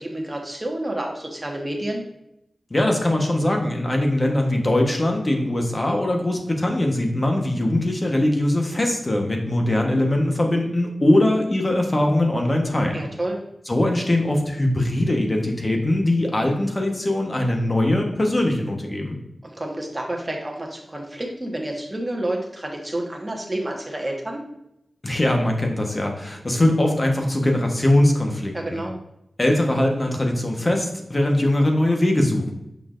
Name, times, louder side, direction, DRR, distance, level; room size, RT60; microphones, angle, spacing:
voice 1, 0.0-2.0 12.9-13.4 19.4-24.4 28.5-29.0, right 1 dB, 20° right, 0 dB, 1.4 m, -29 dB
voice 2, 2.7-13.0 13.7-19.2 25.0-28.8 29.4-32.5, left 1 dB, 35° left, 2 dB, 1.2 m, -21 dB
6.6 x 5.5 x 2.6 m, 0.82 s
wide cardioid pair, 65°, 0 cm